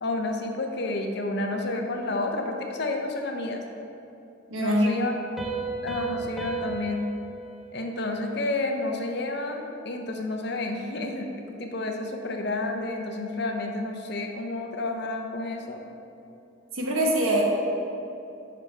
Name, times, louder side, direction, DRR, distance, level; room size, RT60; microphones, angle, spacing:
voice 1, 0.0-3.6 4.6-5.2 5.8-7.0 7.7-11.3 11.6-15.8, left 2 dB, 55° left, 3 dB, 0.6 m, -30 dB
voice 2, 4.5-4.9 16.7-17.4, equal, 85° right, -1 dB, 1.2 m, -23 dB
Piano, 5.4-8.8, right 4 dB, ahead, 0.7 m, -35 dB
9.3 x 5.0 x 3.3 m, 2.8 s
head